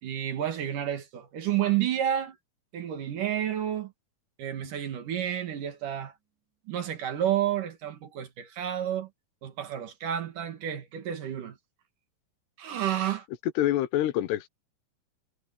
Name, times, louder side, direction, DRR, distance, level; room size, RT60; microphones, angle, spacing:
voice 1, 0.0-2.4 2.7-3.9 4.4-6.1 6.7-9.1 9.4-11.6 12.6-13.3, right 11 dB, 60° right, 3.1 m, -30 dB
Drum, 6.1-6.4, left 3 dB, 85° right, 6.2 m, -61 dB
voice 2, 13.6-14.5, left 13 dB, 90° left, 3.2 m, -26 dB
omnidirectional pair, 4.6 m